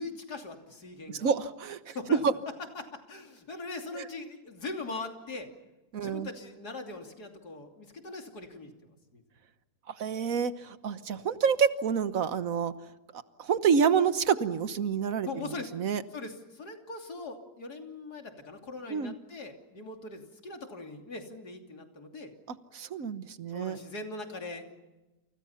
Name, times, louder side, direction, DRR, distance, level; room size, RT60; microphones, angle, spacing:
voice 1, 0.0-1.3 1.9-2.2 2.8-5.5 6.0-8.7 9.1-9.2 11.1-11.3 15.2-15.7 16.1-22.3 23.5-24.7, left 3 dB, 80° left, 3 dB, 3.6 m, -41 dB
voice 2, 1.1-2.3 3.9-4.1 5.9-6.3 9.9-12.7 13.1-16.0 18.9-19.1 22.7-23.8, right 6 dB, 60° right, 12 dB, 1.5 m, -28 dB
29.0 x 28.5 x 5.8 m, 1.1 s
omnidirectional pair, 1.7 m